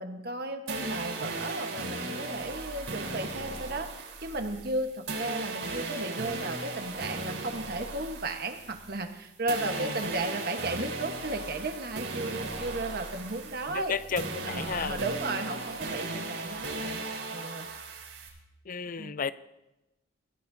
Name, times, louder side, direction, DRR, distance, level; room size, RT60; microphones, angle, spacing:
voice 1, 0.0-14.0 14.4-17.7 19.0-19.1, right 2 dB, 50° right, 5 dB, 1.3 m, -35 dB
sound 1, 0.7-9.2 9.5-18.3, right 2 dB, 85° right, 3.9 m, -37 dB
voice 2, 13.7-15.0 18.7-19.3, left 6 dB, 45° left, 15 dB, 0.5 m, -33 dB
21.0 x 15.0 x 2.8 m, 0.97 s
head